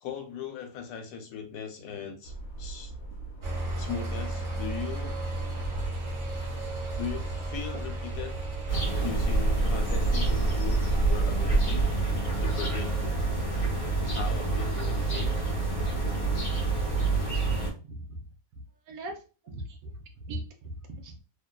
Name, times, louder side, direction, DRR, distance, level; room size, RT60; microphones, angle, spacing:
voice 1, 0.0-2.9 3.8-5.2 6.9-8.4 9.0-11.9 12.4-12.9 14.1-15.4, left 7 dB, 85° left, 5 dB, 1.1 m, -38 dB
sound 1, 2.2-12.2, right 3 dB, 70° left, 1.0 m, -39 dB
sound 2, 3.4-13.1, right 1 dB, 55° right, 1.2 m, -36 dB
sound 3, 8.7-17.7, right 3 dB, 35° left, 1.0 m, -27 dB
voice 2, 17.8-18.2 18.9-19.1 19.4-21.2, right 1 dB, 70° right, 4 dB, 0.9 m, -40 dB
2.8 x 2.2 x 2.2 m, 0.35 s
omnidirectional pair, 1.6 m